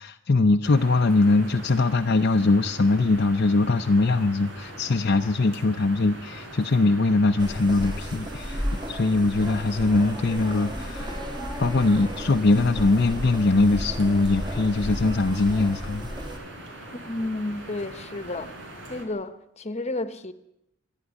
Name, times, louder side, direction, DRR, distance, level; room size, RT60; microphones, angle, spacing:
voice 1, 0.0-11.1 11.6-16.1, left 3 dB, 55° left, 0.7 m, -22 dB
sound 1, 0.6-19.1, right 1 dB, 75° right, 4.5 m, -42 dB
sound 2, 7.4-16.4, equal, 25° right, 3.1 m, -34 dB
voice 2, 16.9-18.5 18.9-20.3, left 2 dB, 35° left, 1.2 m, -32 dB
26.0 x 11.0 x 9.7 m
head